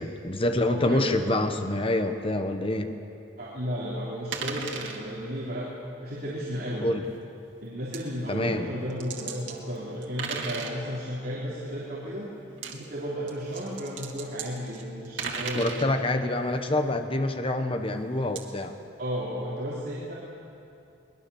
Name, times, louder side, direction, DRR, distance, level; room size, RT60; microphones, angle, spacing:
voice 1, 0.0-3.0 6.8-7.1 8.3-8.7 15.5-18.8, left 1 dB, 30° left, 7 dB, 1.1 m, -26 dB
voice 2, 0.6-1.0 3.4-5.7 6.0-6.9 7.6-12.3 12.7-15.9 19.0-20.1, equal, 55° right, -7 dB, 3.5 m, -33 dB
sound 1, 4.3-5.0 7.0-7.2 7.9-8.0 8.9-9.6 10.0-10.8 12.5-12.8 13.3-15.9 18.4-18.5, right 5 dB, 90° right, 2.3 m, -35 dB
23.0 x 20.0 x 7.1 m, 2.7 s
head